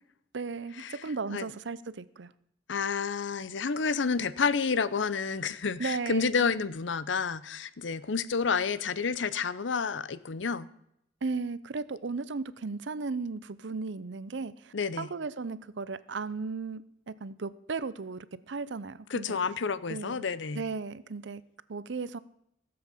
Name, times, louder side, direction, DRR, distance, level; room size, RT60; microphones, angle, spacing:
voice 1, 0.3-2.3 5.8-6.3 11.2-19.4 19.9-20.2 20.5-21.4 21.7-22.2, right 4 dB, 65° right, 0.6 m, -36 dB
voice 2, 2.7-10.7 14.7-15.1 19.1-20.6, left 5 dB, 70° left, 0.7 m, -30 dB
15.5 x 7.8 x 7.0 m
head